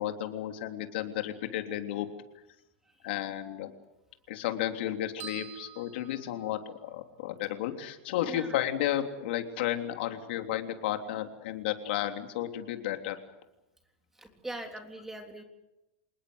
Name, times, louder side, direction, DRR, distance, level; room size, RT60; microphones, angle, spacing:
voice 1, 0.0-2.1 3.0-3.7 4.3-13.1, left 12 dB, 70° left, 6 dB, 3.3 m, -33 dB
sound 1, 5.2-7.0, right 9 dB, 35° right, 7.0 m, -47 dB
voice 2, 8.2-8.6 14.1-15.4, right 1 dB, 5° right, 4 dB, 3.5 m, -42 dB
26.5 x 20.0 x 8.1 m, 0.94 s
supercardioid pair, 155°, 6 cm